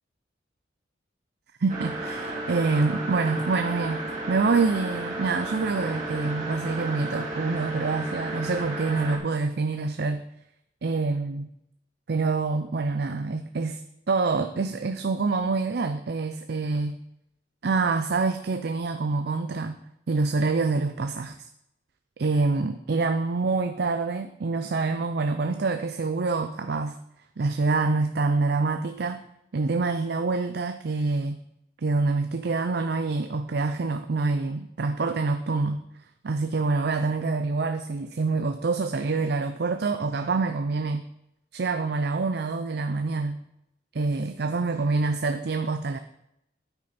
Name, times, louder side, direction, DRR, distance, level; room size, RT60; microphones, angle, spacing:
voice 1, 1.6-10.2 10.8-11.5 12.1-13.8 14.1-17.0 17.6-19.8 20.1-21.4 22.2-27.0 27.4-29.2 29.5-31.4 31.8-35.8 36.2-41.1 41.5-43.4 43.9-46.0, right 3 dB, 55° right, 8 dB, 0.5 m, -26 dB
sound 1, 1.7-9.2, right 2 dB, 40° right, 2.2 m, -33 dB
9.6 x 8.6 x 4.2 m, 0.81 s
head